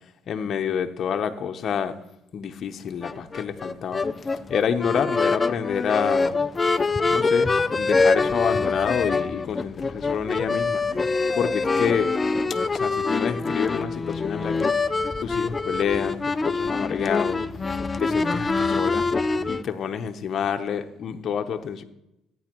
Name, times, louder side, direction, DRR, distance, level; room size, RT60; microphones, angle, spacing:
voice 1, 0.3-1.9 2.3-4.0 4.5-6.4 7.1-10.8 11.3-12.1 12.7-14.7 15.2-17.4 18.0-19.0 19.5-21.8, left 7 dB, 50° left, 6 dB, 0.8 m, -28 dB
sound 1, 3.0-19.6, left 3 dB, 25° left, 0.4 m, -24 dB
14.0 x 9.2 x 3.0 m, 0.85 s
cardioid pair, 100°, 0 cm